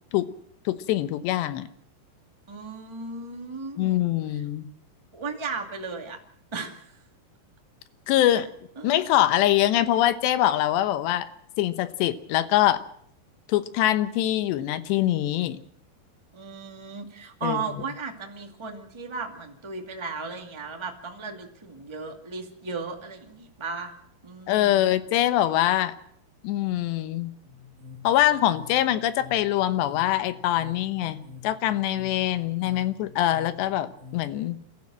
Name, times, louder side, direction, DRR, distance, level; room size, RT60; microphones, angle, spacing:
voice 1, 0.7-1.7 3.8-4.7 8.1-8.5 8.8-11.3 11.6-12.8 13.5-15.6 17.4-17.6 24.5-25.9 26.4-27.3 28.0-34.6, left 13 dB, 90° left, 12 dB, 3.2 m, -24 dB
voice 2, 2.5-4.1 4.3-4.4 5.1-6.2 6.5-7.0 8.2-8.4 8.8-9.1 16.3-23.9 24.2-25.0, right 4 dB, 15° right, 3 dB, 0.9 m, -36 dB
sound 1, 27.4-34.2, left 7 dB, 60° right, 4.9 m, -47 dB
29.5 x 13.5 x 7.6 m, 0.67 s
omnidirectional pair, 4.8 m